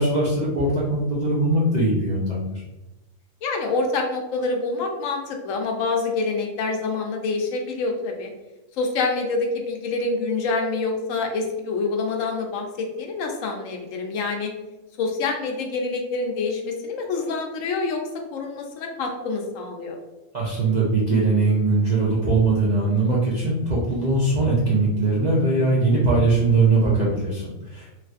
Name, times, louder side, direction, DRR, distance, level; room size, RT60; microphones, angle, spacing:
voice 1, 0.0-2.6 20.3-27.9, right 3 dB, 55° right, -6 dB, 0.5 m, -21 dB
voice 2, 3.4-8.3 8.8-14.5 15.0-18.0 18.3-19.9, left 3 dB, 75° left, 2 dB, 0.9 m, -26 dB
3.2 x 2.9 x 2.4 m, 1.0 s
omnidirectional pair, 1.5 m